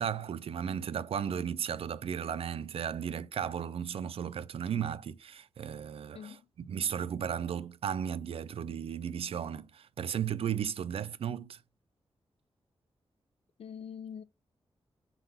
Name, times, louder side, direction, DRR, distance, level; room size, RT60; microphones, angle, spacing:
voice 1, 0.0-6.3 6.7-11.6, right 8 dB, 70° right, 0.4 m, -35 dB
voice 2, 6.1-6.5 13.6-14.2, left 7 dB, 75° left, 0.5 m, -44 dB
5.8 x 4.0 x 5.6 m
wide cardioid pair, 145°, 10 cm